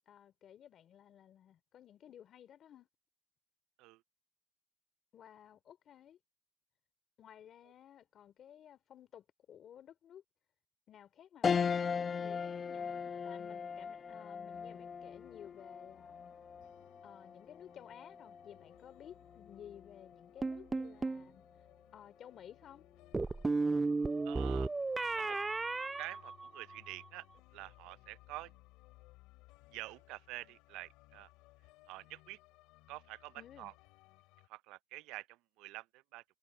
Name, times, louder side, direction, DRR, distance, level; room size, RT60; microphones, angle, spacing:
voice 1, 0.1-2.9 5.1-6.2 7.2-10.2 10.9-16.3 17.0-21.4 21.9-22.9 33.4-33.7, left 10 dB, 60° left, 3.2 m, -56 dB
sound 1, 11.4-21.0 21.5-21.6 22.9-23.4, left 6 dB, 45° left, 0.7 m, -39 dB
sound 2, 14.5-34.5, left 21 dB, 90° left, 3.1 m, -63 dB
sound 3, 20.4-21.2 23.1-26.9, right 3 dB, 25° right, 0.4 m, -34 dB
voice 2, 24.2-24.7 25.1-25.4 26.0-27.2 27.5-28.5 29.7-31.3 31.9-32.4 32.9-33.7 34.5-36.2, right 19 dB, 85° right, 0.4 m, -47 dB
supercardioid pair, 75°, 0 cm